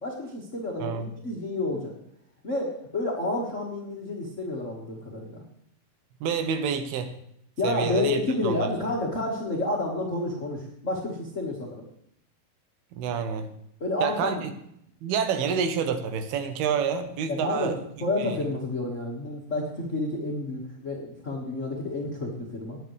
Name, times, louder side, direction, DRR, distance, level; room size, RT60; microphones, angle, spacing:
voice 1, 0.0-1.9 2.4-5.4 7.6-11.8 13.8-14.4 17.3-17.7 18.0-22.8, left 2 dB, 50° left, -2 dB, 0.9 m, -30 dB
voice 2, 6.2-7.1 7.6-8.7 12.9-13.5 14.0-14.5 15.0-17.8 18.2-18.4, right 7 dB, 80° right, 8 dB, 3.0 m, -28 dB
19.0 x 9.3 x 3.3 m, 0.73 s
omnidirectional pair, 4.5 m